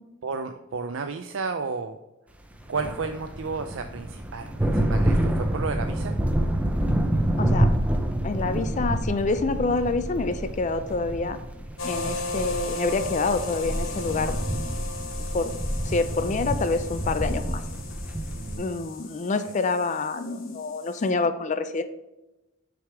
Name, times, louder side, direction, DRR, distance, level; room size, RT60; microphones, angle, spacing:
voice 1, 0.2-2.0 2.7-6.2 18.3-18.7, right 4 dB, 65° right, 7 dB, 0.5 m, -32 dB
sound 1, 2.5-18.6, right 1 dB, 5° right, 0.6 m, -28 dB
voice 2, 7.4-7.7 8.2-11.4 11.8-14.6 15.3-17.6 18.6-21.8, left 3 dB, 35° left, 10 dB, 0.4 m, -27 dB
sound 2, 11.8-21.1, left 3 dB, 75° left, 1.1 m, -37 dB
6.4 x 5.0 x 4.7 m, 0.98 s
head